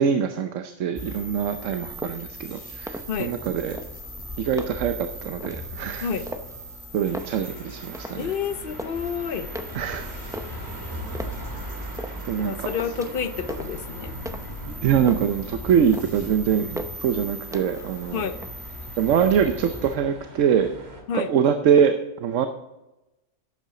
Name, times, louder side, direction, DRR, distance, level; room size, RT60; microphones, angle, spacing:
voice 1, 0.0-3.8 4.4-4.9 5.2-6.1 6.9-8.3 9.7-10.1 12.2-12.7 14.8-18.2 19.0-20.7 21.1-22.5, right 8 dB, 75° right, 7 dB, 1.0 m, -23 dB
sound 1, 1.0-20.0, equal, 15° left, 2.3 m, -39 dB
sound 2, 1.9-2.4 2.7-3.4 3.7-5.0 5.4-5.7 6.2-6.7 7.0-8.3 8.6-9.1 9.5-11.5 12.0-12.4 12.7-13.2 13.5-14.6 14.9-15.4 15.8-16.3 16.7-17.1 17.5-18.0 18.3-18.9, equal, 5° right, 0.4 m, -38 dB
sound 3, 7.0-21.0, right 1 dB, 55° right, 2.2 m, -41 dB
voice 2, 8.2-9.5 12.4-14.1 18.1-18.4 21.1-21.3, left 7 dB, 55° left, 11 dB, 0.7 m, -29 dB
12.0 x 8.5 x 3.8 m, 0.99 s
omnidirectional pair, 1.3 m